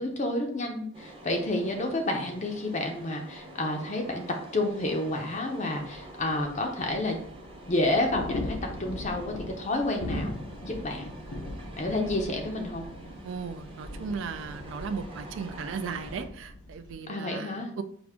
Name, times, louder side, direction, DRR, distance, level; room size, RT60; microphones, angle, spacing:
voice 1, 0.0-7.2 7.7-10.3 10.6-11.1 11.8-12.9 17.1-17.7, left 1 dB, 35° left, 2 dB, 0.5 m, -30 dB
sound 1, 0.9-16.3, right 1 dB, 25° right, 0.7 m, -47 dB
sound 2, 5.8-16.9, left 1 dB, 90° left, 0.7 m, -40 dB
voice 2, 13.2-17.8, right 5 dB, 60° right, 11 dB, 0.3 m, -36 dB
4.9 x 2.5 x 3.5 m, 0.65 s
head